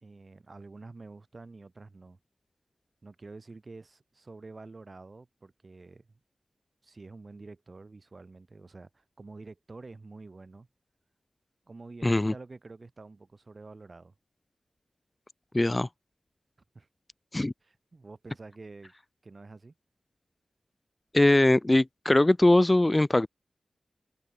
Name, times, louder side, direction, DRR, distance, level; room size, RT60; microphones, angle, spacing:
voice 1, 0.0-2.2 3.0-6.1 6.8-10.7 11.7-14.1 16.7-16.9 17.6-18.9 19.2-19.7, right 3 dB, 45° right, 4.0 m, -48 dB
voice 2, 12.0-12.3 15.5-15.9 17.3-17.5 21.1-23.3, left 1 dB, 25° left, 0.7 m, -21 dB
cardioid pair, 60°, 0 cm